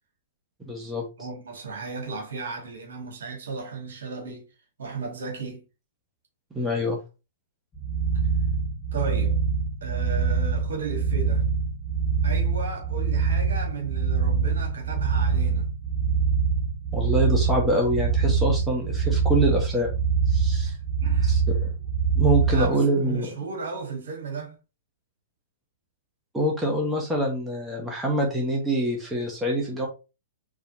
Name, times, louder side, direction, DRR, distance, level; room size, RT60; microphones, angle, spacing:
voice 1, 0.6-1.0 6.5-7.0 16.9-19.9 20.3-20.8 21.2-21.6 22.1-23.3 26.3-29.9, right 1 dB, 10° right, 1.2 m, -25 dB
voice 2, 1.2-4.5 4.8-5.7 8.9-9.4 9.8-11.5 12.2-15.7 20.6-20.7 21.0-21.4 22.4-24.6, right 4 dB, 60° right, 2.1 m, -35 dB
sound 1, 7.7-22.7, right 5 dB, 20° left, 1.6 m, -24 dB
4.7 x 3.5 x 2.8 m
figure-of-eight pair, 110°, 0 cm